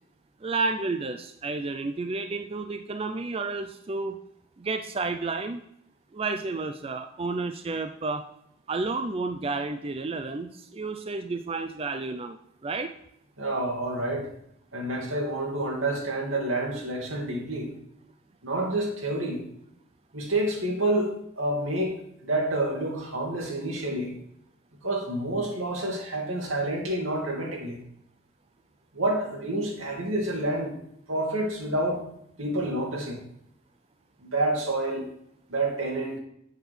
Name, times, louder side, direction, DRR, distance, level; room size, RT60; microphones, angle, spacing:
voice 1, 0.4-4.2 4.6-5.6 6.1-8.2 8.7-12.4 12.6-12.9, right 3 dB, 30° right, 8 dB, 0.4 m, -31 dB
voice 2, 13.4-14.3 14.7-17.7 18.4-19.4 20.1-24.1 24.8-27.8 28.9-30.8 31.1-32.0 32.4-33.2 34.2-35.1 35.5-36.2, right 1 dB, 90° right, 0 dB, 2.5 m, -28 dB
8.1 x 5.0 x 6.2 m, 0.74 s
head